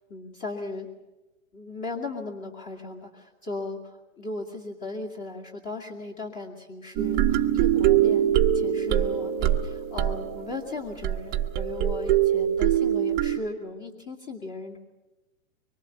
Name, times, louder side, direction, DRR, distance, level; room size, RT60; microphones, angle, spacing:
voice 1, 0.1-0.9 1.5-14.8, left 2 dB, 20° left, 0 dB, 2.3 m, -37 dB
sound 1, 7.0-13.4, right 11 dB, 25° right, 1.1 m, -23 dB
24.5 x 24.0 x 7.0 m, 1.1 s
hypercardioid pair, 150°, 40 cm